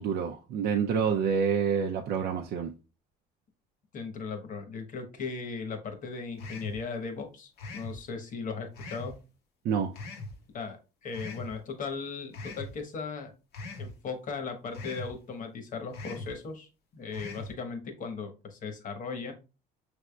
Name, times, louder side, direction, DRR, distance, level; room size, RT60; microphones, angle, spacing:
voice 1, 0.0-2.7 9.6-9.9, right 7 dB, 70° right, 0.5 m, -28 dB
voice 2, 3.9-9.2 10.5-13.3 13.8-19.3, left 4 dB, 50° left, 1.2 m, -37 dB
sound 1, 6.4-6.8 7.6-8.0 8.8-9.1 10.0-10.3 11.1-11.5 12.3-12.7 13.5-13.9 14.7-15.1 15.9-16.3 17.1-17.5, left 3 dB, 70° left, 1.1 m, -40 dB
6.0 x 3.4 x 2.3 m
cardioid pair, 110°, 17 cm